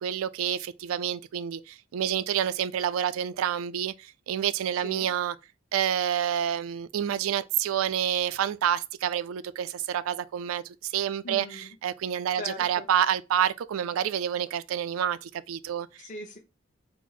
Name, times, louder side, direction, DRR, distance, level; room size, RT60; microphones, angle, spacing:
voice 1, 0.0-5.4 5.7-16.0, right 9 dB, 80° right, 0.3 m, -28 dB
voice 2, 4.7-5.1 11.2-11.7 12.3-12.9 16.0-16.4, left 2 dB, 40° left, 0.9 m, -40 dB
4.5 x 2.0 x 4.0 m
head